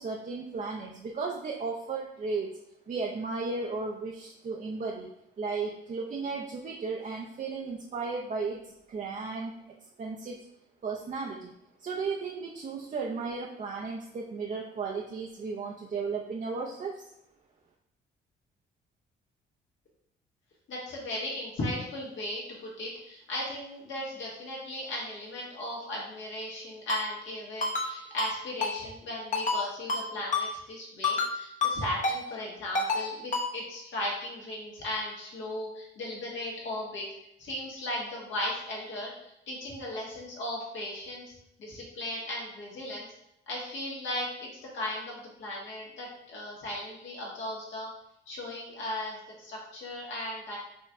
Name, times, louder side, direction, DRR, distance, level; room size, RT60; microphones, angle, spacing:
voice 1, 0.0-2.5 2.9-5.1 5.4-9.5 10.0-10.4 10.8-11.5 11.8-17.0, right 4 dB, 40° right, -1 dB, 0.6 m, -35 dB
voice 2, 20.7-37.0 37.4-41.3 41.6-43.1 43.5-44.5 44.7-47.9 48.3-50.6, left 1 dB, 70° left, -3 dB, 1.6 m, -36 dB
Ringtone, 26.9-27.0 27.6-27.9 28.2-28.3 28.6-28.7 29.3-29.6 29.9-30.0 30.3-30.5 31.0-31.3 31.6-31.7 32.0-32.2 32.7-33.0 33.3-33.5, left 3 dB, 40° left, 0.9 m, -27 dB
4.4 x 3.0 x 3.5 m, 0.80 s
cardioid pair, 90°, 20 cm